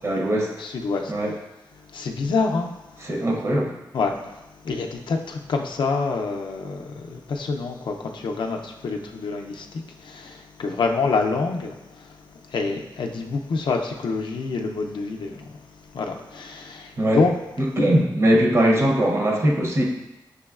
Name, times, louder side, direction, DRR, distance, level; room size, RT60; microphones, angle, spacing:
voice 1, 0.0-0.5 1.1-1.3 3.0-3.7 17.0-17.3 17.6-19.8, right 1 dB, 35° right, 0 dB, 0.6 m, -20 dB
voice 2, 0.6-1.1 1.9-3.2 3.9-4.4 4.6-12.1 12.5-15.5 15.9-17.3, left 4 dB, 75° left, 3 dB, 0.4 m, -27 dB
6.0 x 3.0 x 2.3 m, 0.97 s
wide cardioid pair, 145°, 8 cm